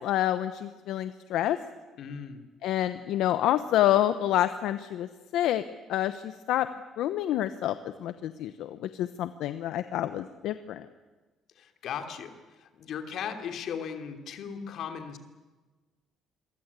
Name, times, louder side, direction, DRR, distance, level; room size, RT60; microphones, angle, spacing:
voice 1, 0.0-1.6 2.6-5.6 5.9-6.7 7.0-7.7 8.0-10.8, left 12 dB, 70° left, 11 dB, 1.0 m, -28 dB
voice 2, 2.0-2.4 11.6-15.2, left 7 dB, 50° left, 6 dB, 2.9 m, -37 dB
27.0 x 23.0 x 8.4 m, 1.3 s
cardioid pair, 175°, 0 cm